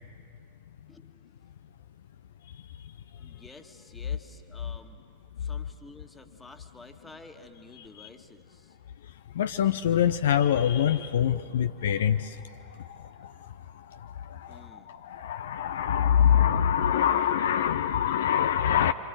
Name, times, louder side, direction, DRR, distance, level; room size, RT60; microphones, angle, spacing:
voice 1, 0.9-1.5 3.1-5.1 5.4-8.8 14.5-15.0, left 2 dB, 10° left, 5 dB, 1.8 m, -51 dB
voice 2, 9.4-12.3 13.2-13.3 14.3-14.6 14.9-18.9, left 9 dB, 60° left, 11 dB, 0.6 m, -24 dB
29.5 x 26.0 x 7.8 m, 2.6 s
figure-of-eight pair, 90°, 0 cm